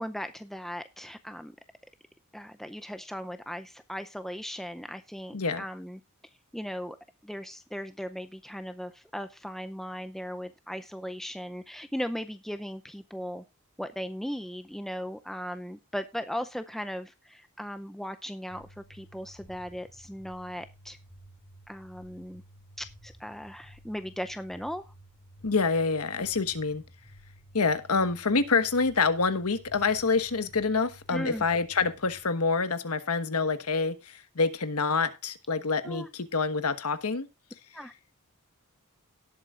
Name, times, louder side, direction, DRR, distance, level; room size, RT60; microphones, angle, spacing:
voice 1, 0.0-1.6 2.3-6.0 6.5-7.0 7.2-13.4 13.8-21.0 21.7-22.4 22.8-24.8 31.1-31.4 35.8-36.1 37.7-37.9, equal, ahead, 0.5 m, -37 dB
voice 2, 5.3-5.6 25.4-26.8 27.5-37.3, left 4 dB, 80° left, 1.2 m, -27 dB
sound 1, 18.5-32.2, equal, 55° left, 3.4 m, -54 dB
18.0 x 8.0 x 2.5 m
head